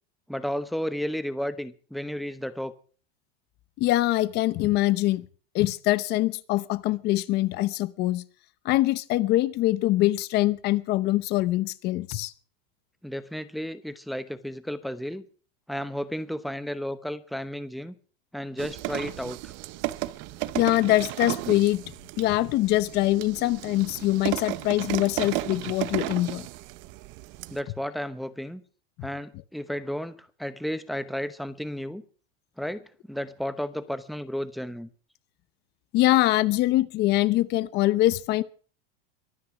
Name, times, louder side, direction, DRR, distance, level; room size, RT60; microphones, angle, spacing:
voice 1, 0.3-2.7 13.0-15.2 15.7-17.9 18.3-19.5 27.5-28.6 29.0-32.0 32.6-34.9, equal, ahead, 12 dB, 0.9 m, -33 dB
voice 2, 3.8-5.2 5.5-8.2 8.6-12.3 20.5-21.8 22.2-26.5 35.9-38.4, left 16 dB, 35° left, 17 dB, 0.8 m, -23 dB
sound 1, 18.6-27.6, right 17 dB, 40° right, 0.9 m, -34 dB
23.0 x 9.5 x 6.0 m, 0.42 s
supercardioid pair, 160°, 30 cm